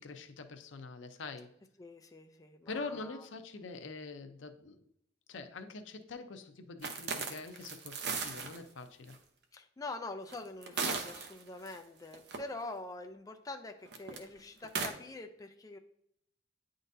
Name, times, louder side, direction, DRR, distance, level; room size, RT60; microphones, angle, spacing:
voice 1, 0.0-1.5 2.7-4.8 5.3-9.2, left 3 dB, 85° left, 7 dB, 0.6 m, -44 dB
voice 2, 1.8-3.3 9.5-15.8, left 2 dB, 20° left, 5 dB, 0.4 m, -45 dB
sound 1, 6.8-8.6 9.1-9.2 10.3-11.8 12.1-12.4 13.9-14.2 14.6-14.9, right 4 dB, 60° right, 0.7 m, -36 dB
9.2 x 3.8 x 2.7 m, 0.75 s
head